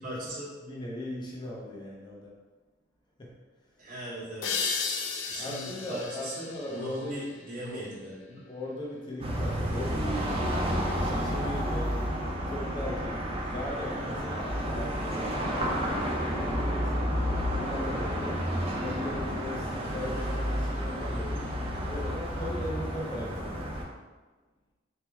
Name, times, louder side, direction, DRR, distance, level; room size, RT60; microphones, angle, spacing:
voice 1, 0.0-0.5 3.8-4.5 5.3-8.5, right 1 dB, 45° right, -7 dB, 1.0 m, -39 dB
voice 2, 0.6-2.4 3.2-3.9 5.3-7.3 7.6-7.9 8.5-10.4 10.9-12.0 12.5-17.0 17.4-18.4 18.8-21.5 21.9-23.8, left 1 dB, 25° left, -3 dB, 0.5 m, -39 dB
sound 1, 4.4-7.8, left 5 dB, 75° left, 0.4 m, -35 dB
sound 2, 9.2-23.8, equal, 30° right, 0.6 m, -31 dB
4.4 x 2.1 x 3.4 m, 1.3 s
head